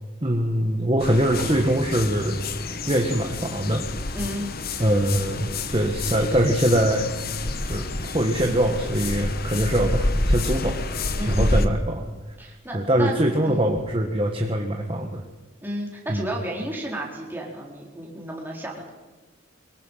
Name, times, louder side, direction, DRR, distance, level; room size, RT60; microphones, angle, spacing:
voice 1, 0.2-2.4 2.9-3.9 4.8-7.1 7.6-7.9 8.1-10.8 11.2-12.1 12.7-15.2 16.1-16.2, right 1 dB, 25° right, 3 dB, 1.5 m, -23 dB
sound 1, 1.0-11.7, left 2 dB, 45° left, 1.3 m, -28 dB
sound 2, 1.4-6.1, right 1 dB, 45° right, 4.6 m, -42 dB
voice 2, 4.1-4.5 11.1-11.8 12.4-13.2 13.4-13.7 15.6-18.9, right 1 dB, 10° right, -2 dB, 4.5 m, -33 dB
24.0 x 22.5 x 5.7 m, 1.3 s
head